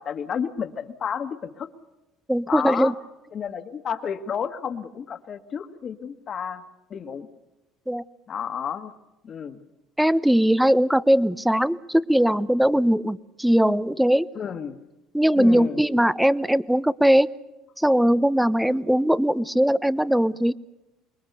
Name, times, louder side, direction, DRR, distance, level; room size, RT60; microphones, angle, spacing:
voice 1, 0.0-1.7 2.5-2.9 3.3-6.6 6.9-7.3 8.3-8.9 9.2-9.6 14.3-14.8 15.3-15.8, left 7 dB, 45° left, 10 dB, 1.7 m, -31 dB
voice 2, 2.3-2.9 7.9-8.0 10.0-14.3 15.1-17.3 17.8-20.5, equal, 5° right, 18 dB, 0.7 m, -20 dB
25.0 x 21.5 x 6.9 m, 1.0 s
supercardioid pair, 95°, 0 cm